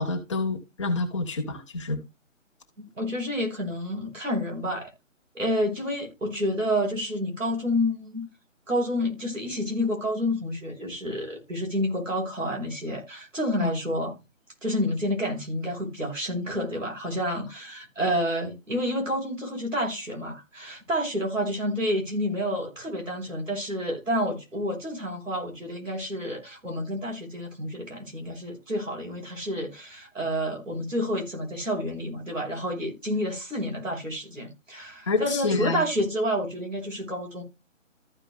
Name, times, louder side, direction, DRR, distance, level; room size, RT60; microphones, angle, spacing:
voice 1, 0.0-2.0 13.6-13.7 35.1-35.8, left 3 dB, 25° left, 1.6 m, -27 dB
voice 2, 3.0-4.9 5.3-8.3 8.7-14.1 14.6-37.4, equal, 75° right, 4.0 m, -29 dB
14.5 x 5.0 x 2.3 m
figure-of-eight pair, 150°, 39 cm